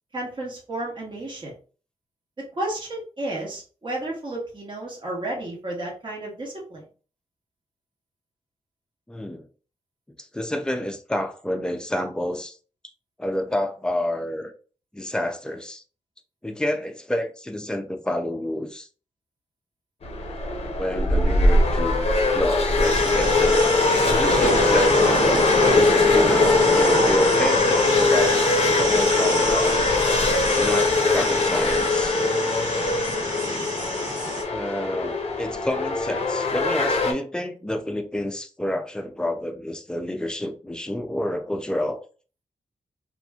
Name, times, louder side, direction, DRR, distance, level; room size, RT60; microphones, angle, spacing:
voice 1, 0.1-1.5 2.4-6.8, right 1 dB, 40° right, -3 dB, 1.2 m, -32 dB
voice 2, 9.1-9.4 10.2-12.6 13.2-14.5 14.9-15.8 16.4-18.9 20.8-23.7 24.1-25.5 25.9-28.3 28.8-30.0 30.5-32.2 34.5-42.0, left 1 dB, 5° left, 5 dB, 0.4 m, -29 dB
sound 1, 20.0-37.1, left 3 dB, 50° left, 0.6 m, -21 dB
sound 2, 22.8-34.4, right 2 dB, 80° right, 1.2 m, -28 dB
2.9 x 2.4 x 2.3 m, 0.38 s
cardioid pair, 80°, 13 cm